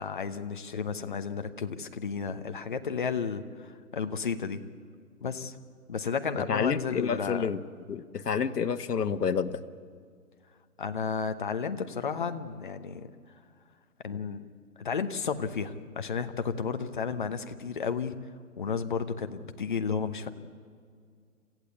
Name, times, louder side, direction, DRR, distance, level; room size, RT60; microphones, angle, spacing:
voice 1, 0.0-4.6 5.2-5.6 5.9-7.5 10.8-13.1 14.0-14.5 14.8-18.1 18.6-20.3, left 6 dB, 30° left, 8 dB, 1.0 m, -32 dB
voice 2, 6.5-7.6 7.9-9.6, left 6 dB, 85° left, 10 dB, 1.4 m, -29 dB
27.5 x 15.5 x 8.3 m, 2.1 s
hypercardioid pair, 170°, 46 cm